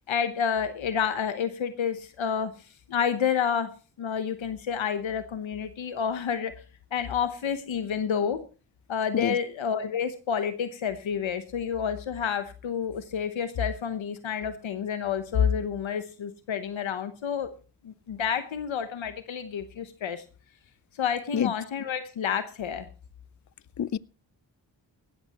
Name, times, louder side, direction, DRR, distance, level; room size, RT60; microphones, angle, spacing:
voice 1, 0.1-2.5 2.9-3.7 4.0-6.5 6.9-8.4 8.9-17.5 17.8-20.2 21.0-22.9, left 7 dB, 80° left, 1.0 m, -29 dB
voice 2, 9.1-9.4 21.3-21.5 23.8-24.0, left 9 dB, 40° left, 0.5 m, -26 dB
17.5 x 14.0 x 3.0 m
cardioid pair, 50°, 46 cm